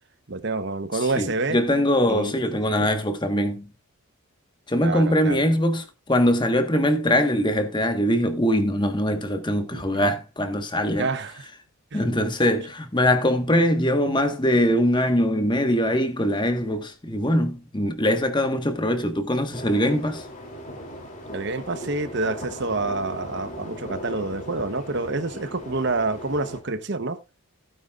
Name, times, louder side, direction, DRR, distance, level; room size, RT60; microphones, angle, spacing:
voice 1, 0.3-1.6 2.1-2.3 2.8-2.9 4.8-5.4 9.7-9.8 11.0-11.4 11.9-12.0 21.3-27.2, right 3 dB, 55° right, 1.0 m, -28 dB
voice 2, 1.2-3.7 4.7-11.1 11.9-20.2, equal, 20° left, 1.4 m, -22 dB
sound 1, 19.5-26.6, equal, 35° left, 3.1 m, -38 dB
16.0 x 9.2 x 2.4 m
head